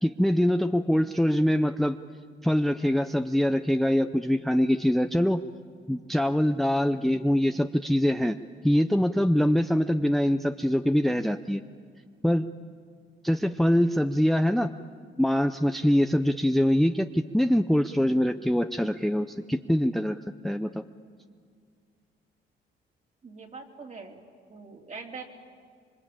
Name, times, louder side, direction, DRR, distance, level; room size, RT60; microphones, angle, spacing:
voice 1, 0.0-2.0 2.4-5.4 5.9-8.4 8.6-11.6 12.2-12.5 13.2-14.7 15.2-20.8, equal, ahead, 9 dB, 0.6 m, -24 dB
voice 2, 23.2-24.2 24.5-25.2, right 4 dB, 35° right, 2 dB, 3.3 m, -42 dB
26.0 x 23.5 x 8.7 m, 2.1 s
cardioid pair, 90°, 20 cm